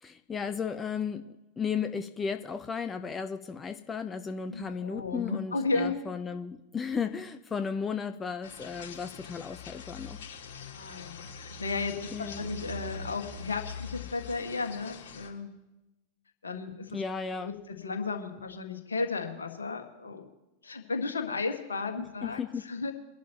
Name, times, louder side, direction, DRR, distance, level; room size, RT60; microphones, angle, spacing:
voice 1, 0.0-10.2 12.1-12.4 16.9-17.6 22.2-22.6, left 6 dB, 20° left, 8 dB, 0.6 m, -35 dB
voice 2, 4.5-5.9 10.7-15.5 16.4-17.0 17.4-20.3 20.6-22.9, left 3 dB, 70° left, 4 dB, 1.7 m, -34 dB
sound 1, 8.4-15.3, left 4 dB, 55° left, 3.5 m, -43 dB
24.0 x 11.0 x 2.9 m, 0.99 s
figure-of-eight pair, 90°, 0 cm